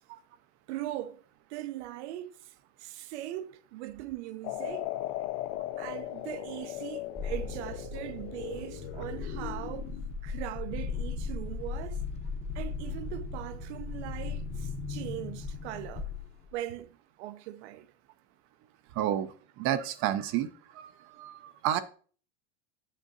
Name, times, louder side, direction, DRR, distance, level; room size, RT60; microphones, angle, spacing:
voice 1, 0.7-1.2 1.5-2.3 2.8-4.9 5.8-9.9 10.2-12.0 12.5-16.1 16.5-16.9 17.2-17.9, right 14 dB, 80° right, 0.7 m, -40 dB
sound 1, 4.4-10.1, left 14 dB, 50° left, 0.4 m, -38 dB
sound 2, 7.2-16.5, left 4 dB, 20° left, 0.7 m, -37 dB
voice 2, 19.0-19.3 19.6-20.5 20.7-21.8, right 11 dB, 40° right, 0.4 m, -30 dB
7.3 x 6.8 x 2.6 m
supercardioid pair, 150°, 34 cm